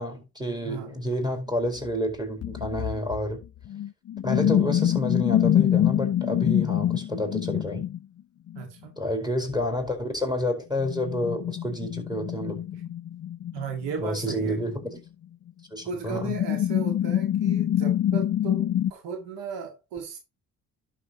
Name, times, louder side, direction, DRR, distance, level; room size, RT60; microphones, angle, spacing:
voice 1, 0.0-3.4 4.2-7.8 9.0-12.6 14.0-15.0 15.7-16.3, left 1 dB, 10° right, 4.7 m, -29 dB
sound 1, 1.8-1.9 2.4-8.0 8.5-8.6 10.8-15.0 15.5-15.6 16.1-18.9, left 11 dB, 40° left, 0.4 m, -25 dB
voice 2, 8.5-9.0 13.5-14.6 15.8-20.2, right 6 dB, 85° right, 2.1 m, -36 dB
11.5 x 6.6 x 3.0 m
supercardioid pair, 50°, 41 cm